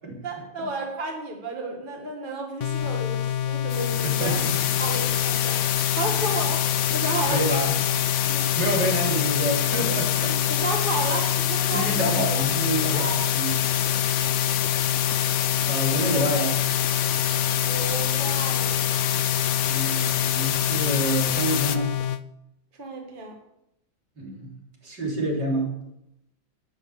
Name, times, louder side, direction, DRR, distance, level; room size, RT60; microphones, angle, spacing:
voice 1, 0.2-4.4 4.8-5.6 6.0-6.6 6.9-7.4 8.2-8.5 10.5-12.0 12.9-13.2 13.8-13.9 17.6-18.9 22.7-23.4, right 3 dB, 30° right, 2 dB, 2.1 m, -32 dB
sound 1, 2.6-22.2, left 10 dB, 65° left, 0.7 m, -27 dB
sound 2, 3.7-21.8, left 10 dB, 85° left, 1.5 m, -27 dB
voice 2, 4.0-4.6 7.3-7.8 8.2-10.4 11.7-13.5 15.7-16.6 19.7-21.9 24.2-24.5 24.8-25.7, right 1 dB, 65° right, -1 dB, 4.1 m, -28 dB
12.5 x 10.0 x 7.1 m, 0.82 s
omnidirectional pair, 2.0 m